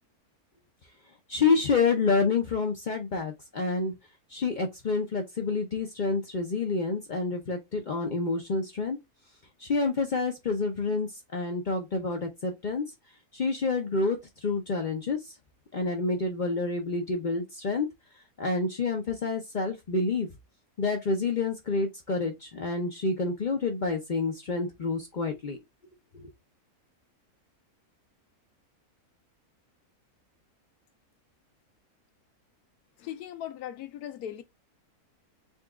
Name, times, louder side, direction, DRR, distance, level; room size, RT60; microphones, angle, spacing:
voice 1, 1.3-3.9 4.3-9.0 9.6-12.8 13.3-14.2 14.4-15.2 15.7-17.9 18.4-20.3 20.8-25.6, left 3 dB, 65° left, 0.4 m, -28 dB
voice 2, 33.0-34.4, left 10 dB, 85° left, 1.2 m, -38 dB
4.0 x 2.3 x 3.5 m
omnidirectional pair, 1.6 m